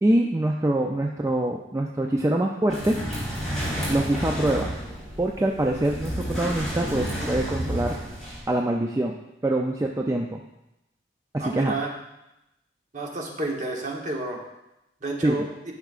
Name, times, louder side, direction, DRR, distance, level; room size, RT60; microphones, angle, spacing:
voice 1, 0.0-3.0 3.9-4.7 5.2-8.0 8.5-9.2 9.4-10.4 11.3-11.7 15.2-15.4, right 1 dB, 15° right, 1 dB, 0.3 m, -24 dB
sound 1, 2.7-8.4, equal, 5° left, 3.0 m, -31 dB
voice 2, 11.4-11.9 12.9-14.4 15.0-15.5, right 2 dB, 45° right, 0 dB, 1.1 m, -30 dB
11.5 x 5.8 x 2.4 m, 0.91 s
head